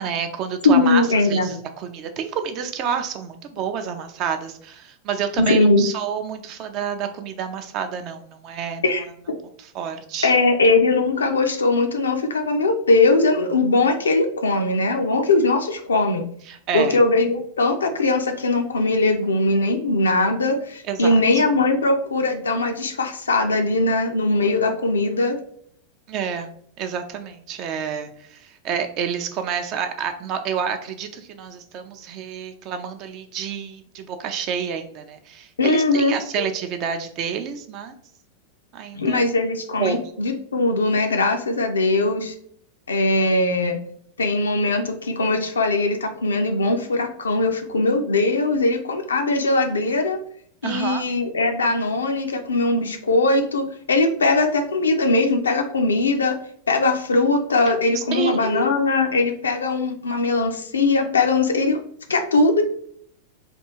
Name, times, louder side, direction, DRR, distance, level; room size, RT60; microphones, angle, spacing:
voice 1, 0.0-1.0 1.3-8.8 9.6-10.3 16.5-17.0 20.9-21.4 26.1-26.5 26.8-37.9 38.7-39.2 39.8-40.0 50.6-51.0 57.9-58.7, right 7 dB, 40° right, 7 dB, 0.4 m, -29 dB
voice 2, 0.6-1.6 5.4-5.8 8.8-9.4 10.2-16.3 16.7-25.4 35.6-36.2 38.9-42.3 42.9-43.8 44.2-50.2 50.6-56.4 56.7-61.8 62.1-62.6, left 2 dB, 70° left, 5 dB, 0.4 m, -20 dB
3.4 x 2.3 x 2.9 m, 0.64 s
figure-of-eight pair, 90°, 0 cm